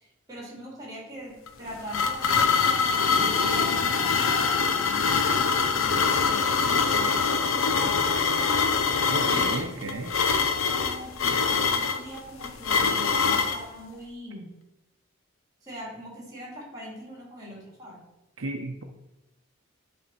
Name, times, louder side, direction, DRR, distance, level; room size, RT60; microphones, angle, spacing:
voice 1, 0.0-8.3 9.2-14.5 15.6-18.1, equal, 20° right, -3 dB, 2.3 m, -42 dB
sound 1, 1.5-13.6, left 5 dB, 80° left, 0.6 m, -24 dB
voice 2, 9.0-10.1 18.4-18.8, right 2 dB, 75° right, 3 dB, 0.7 m, -33 dB
10.0 x 3.5 x 4.3 m, 0.93 s
head